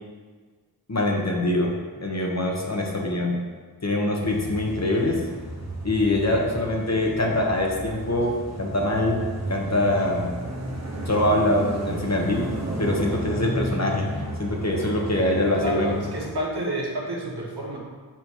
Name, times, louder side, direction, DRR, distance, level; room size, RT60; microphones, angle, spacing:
voice 1, 0.9-1.7 2.0-3.4 3.8-5.2 5.8-9.2 9.5-10.3 11.0-12.4 12.8-15.9, left 1 dB, 45° left, -1 dB, 1.2 m, -24 dB
sound 1, 4.2-16.3, right 1 dB, 45° right, 1.2 m, -33 dB
voice 2, 15.5-17.8, right 1 dB, 80° right, -4 dB, 1.5 m, -29 dB
7.5 x 3.1 x 5.6 m, 1.5 s
wide cardioid pair, 45°, 38 cm